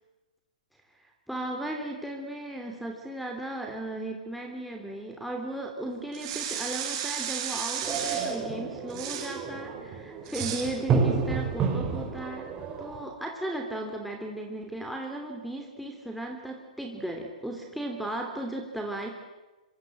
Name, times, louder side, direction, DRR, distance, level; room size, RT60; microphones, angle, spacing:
voice 1, 1.3-19.1, right 1 dB, ahead, 0 dB, 3.0 m, -36 dB
sound 1, 6.1-8.4 8.9-9.4 10.3-10.8, right 9 dB, 45° right, 6.2 m, -34 dB
sound 2, 7.8-13.0, right 5 dB, 25° right, 4.9 m, -30 dB
25.5 x 25.0 x 7.7 m, 1.1 s
hypercardioid pair, 120°, 4 cm